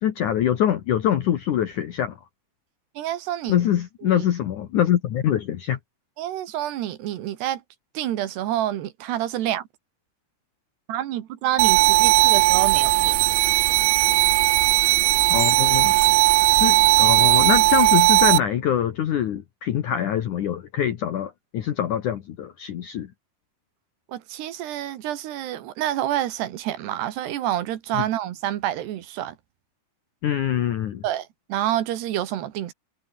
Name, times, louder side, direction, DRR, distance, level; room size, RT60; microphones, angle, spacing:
voice 1, 0.0-2.2 3.5-5.8 15.3-15.9 16.5-23.1 27.9-28.0 30.2-31.0, left 10 dB, 75° left, 1.8 m, -24 dB
voice 2, 3.0-3.6 4.0-4.2 6.2-7.6 7.9-9.7 10.9-13.1 24.1-29.3 31.0-32.7, right 12 dB, 65° right, 3.2 m, -28 dB
sound 1, 11.6-18.4, right 21 dB, 85° right, 3.4 m, -17 dB
sound 2, 15.1-18.4, right 5 dB, 35° right, 6.3 m, -41 dB
omnidirectional pair, 5.9 m